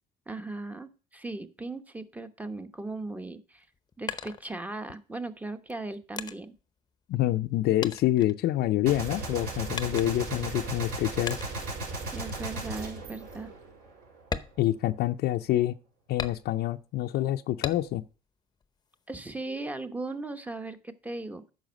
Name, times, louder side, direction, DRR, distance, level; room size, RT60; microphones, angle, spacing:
voice 1, 0.3-3.7 4.0-6.5 12.1-13.5 19.1-21.5, right 2 dB, 10° right, 1.0 m, -38 dB
sound 1, 3.5-5.0 5.7-7.5 7.8-9.0 9.7-10.4 11.3-11.7 12.2-12.4 12.9-13.0 13.4-13.6 14.2-15.4 16.2-16.8 17.6-18.2 18.6-19.4, left 6 dB, 25° left, 0.7 m, -39 dB
voice 2, 7.1-11.4 14.6-15.7 16.1-18.0, left 14 dB, 70° left, 0.5 m, -27 dB
Gunshot gunfire, 8.9-14.1, right 2 dB, 65° right, 5.5 m, -36 dB
9.1 x 6.1 x 5.2 m
cardioid pair, 110°, 17 cm